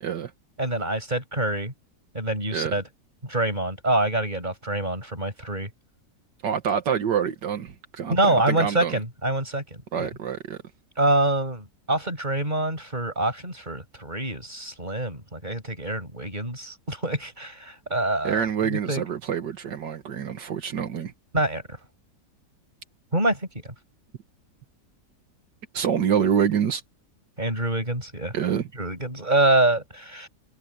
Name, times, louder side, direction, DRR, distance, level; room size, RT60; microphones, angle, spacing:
voice 1, 0.0-0.3 2.5-2.8 6.4-9.0 9.9-10.6 18.2-21.1 25.7-26.8 28.3-28.7, right 8 dB, 80° right, 2.0 m, -26 dB
voice 2, 0.6-1.7 2.1-2.8 3.2-5.7 8.1-10.1 11.0-19.0 21.3-21.6 23.1-23.7 27.4-28.3 28.8-30.3, right 1 dB, 25° right, 7.6 m, -26 dB
omnidirectional pair, 1.9 m